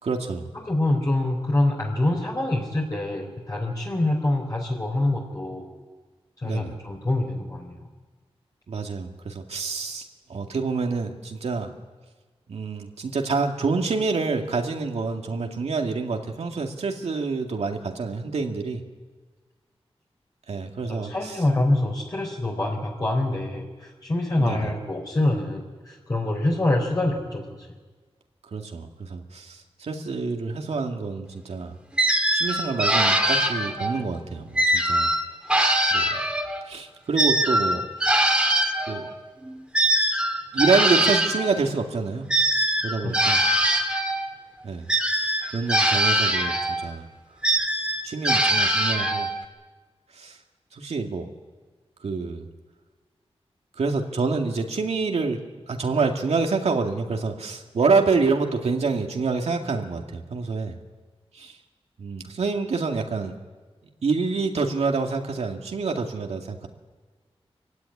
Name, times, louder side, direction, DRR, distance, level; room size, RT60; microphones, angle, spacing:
voice 1, 0.0-0.5 6.4-6.7 8.7-11.7 12.5-18.8 20.5-21.4 24.4-24.7 28.5-31.7 32.3-35.1 35.5-35.6 35.9-36.0 36.7-37.8 38.9-39.1 40.5-42.3 42.8-43.4 44.6-44.9 45.5-47.0 48.0-49.3 50.1-50.4 50.7-51.3 52.0-52.5 53.8-55.4 55.7-60.8 61.3-61.6 62.0-63.3 64.0-66.7, right 4 dB, 90° right, 3 dB, 2.2 m, -27 dB
voice 2, 0.5-5.7 6.4-7.9 20.9-27.7 43.0-43.1, left 1 dB, 35° left, -2 dB, 3.6 m, -25 dB
sound 1, 32.0-34.0 34.6-36.6 37.1-41.5 42.3-44.3 44.9-46.9 47.4-49.4, right 1 dB, 10° right, 2.2 m, -22 dB
25.0 x 16.0 x 9.8 m, 1.4 s
wide cardioid pair, 130°, 11 cm